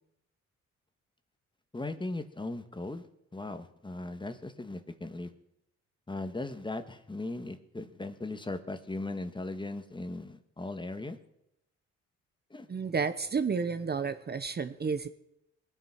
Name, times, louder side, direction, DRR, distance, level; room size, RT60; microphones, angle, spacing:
voice 1, 1.7-3.1 3.3-5.3 6.1-11.2 12.5-12.7, left 2 dB, 15° left, 10 dB, 1.6 m, -38 dB
voice 2, 12.7-15.1, right 5 dB, 35° right, 11 dB, 1.1 m, -31 dB
20.5 x 9.8 x 6.0 m, 0.80 s
cardioid pair, 90°, 30 cm